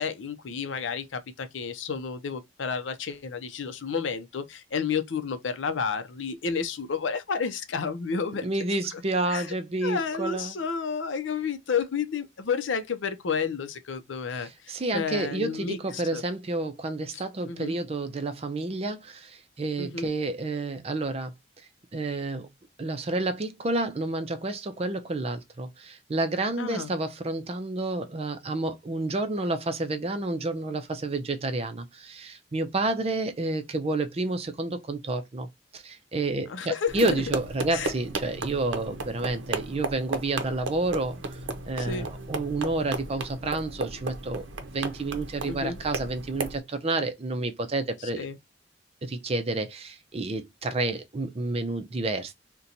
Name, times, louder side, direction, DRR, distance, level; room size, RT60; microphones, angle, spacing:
voice 1, 0.0-8.5 8.9-9.0 9.3-9.5 9.8-16.2 17.1-17.7 19.8-20.1 26.6-26.9 36.5-37.2 37.7-37.9 41.8-42.1 45.5-45.8 48.2-48.4, left 5 dB, 85° left, 0.5 m, -31 dB
voice 2, 8.4-10.6 14.4-21.3 21.9-22.5 22.8-35.5 35.7-41.4 41.6-48.3 49.0-52.3, right 2 dB, 35° right, 0.5 m, -30 dB
sound 1, 36.9-46.6, right 3 dB, 85° right, 0.6 m, -35 dB
2.8 x 2.2 x 3.8 m
head